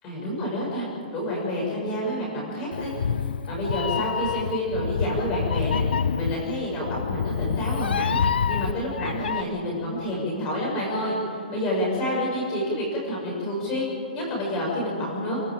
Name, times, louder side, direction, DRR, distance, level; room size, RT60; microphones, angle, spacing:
voice 1, 0.0-0.8 1.1-2.9 3.5-5.8 6.1-8.2 8.5-13.9 14.1-15.4, equal, 15° left, -3 dB, 6.7 m, -28 dB
Meow, 2.7-9.4, left 7 dB, 80° left, 0.8 m, -27 dB
29.5 x 13.5 x 9.0 m, 2.8 s
hypercardioid pair, 180°, 5 cm